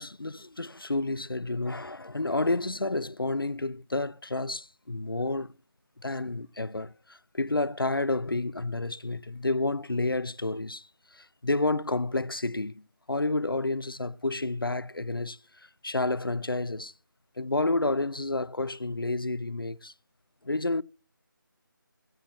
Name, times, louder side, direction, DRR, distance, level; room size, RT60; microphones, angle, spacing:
voice 1, 0.0-5.5 6.0-15.4 15.8-16.9 17.4-19.9 20.4-20.8, left 2 dB, 90° left, 0.5 m, -30 dB
16.5 x 14.0 x 2.9 m
figure-of-eight pair, 160°, 12 cm